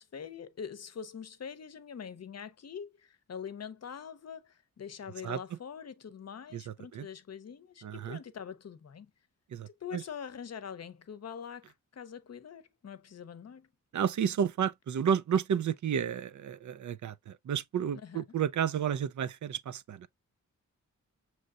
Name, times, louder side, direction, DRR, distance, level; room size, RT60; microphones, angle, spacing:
voice 1, 0.0-9.1 9.7-13.7 18.0-18.2, left 7 dB, 50° left, 0.7 m, -44 dB
voice 2, 6.5-7.1 7.8-8.2 9.5-10.0 13.9-20.1, right 8 dB, 65° right, 0.5 m, -31 dB
6.5 x 3.1 x 2.4 m
wide cardioid pair, 90°, 32 cm